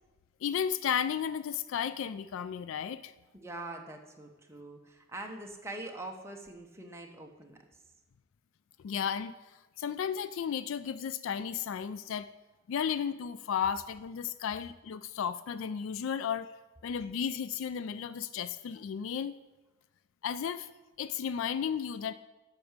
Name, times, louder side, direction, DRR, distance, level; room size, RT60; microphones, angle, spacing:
voice 1, 0.4-3.1 8.8-9.3 9.8-12.3 12.7-16.5 16.8-19.4 20.2-20.7 21.0-22.1, left 8 dB, 65° left, 15 dB, 0.3 m, -33 dB
voice 2, 3.3-7.6, right 2 dB, 10° right, 2 dB, 1.0 m, -43 dB
8.6 x 5.9 x 6.5 m, 1.1 s
head